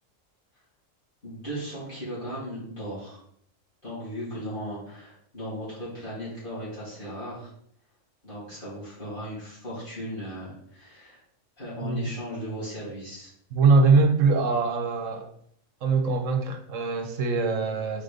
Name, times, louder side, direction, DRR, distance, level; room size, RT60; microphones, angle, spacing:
voice 1, 1.2-3.2 3.8-7.5 8.2-11.2 11.6-13.3, equal, 40° left, -10 dB, 3.2 m, -36 dB
voice 2, 13.5-15.3 15.8-18.0, right 4 dB, 80° right, 5 dB, 1.3 m, -22 dB
5.2 x 4.0 x 5.1 m, 0.66 s
omnidirectional pair, 1.3 m